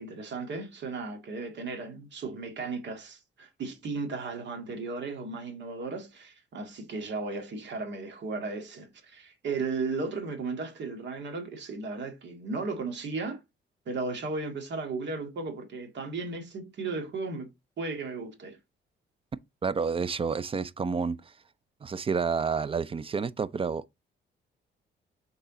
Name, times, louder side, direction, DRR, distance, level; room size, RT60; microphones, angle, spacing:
voice 1, 0.0-13.4 13.9-17.5 17.8-18.6, right 3 dB, 65° right, 2.0 m, -35 dB
voice 2, 19.6-21.2 21.8-24.0, right 5 dB, 25° right, 0.5 m, -29 dB
6.7 x 4.1 x 3.7 m
cardioid pair, 90°, 20 cm